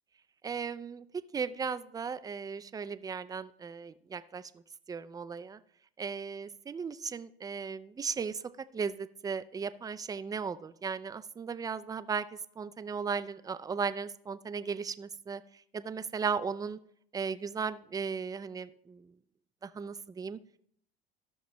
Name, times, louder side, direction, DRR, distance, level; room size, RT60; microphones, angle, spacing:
voice 1, 0.4-1.0 1.3-4.5 4.9-5.6 6.0-8.4 8.7-12.3 12.6-15.4 15.7-16.8 17.1-19.1 19.6-20.4, right 6 dB, 15° right, 13 dB, 0.4 m, -36 dB
13.5 x 6.0 x 3.1 m, 0.67 s
hypercardioid pair, 80°, 30 cm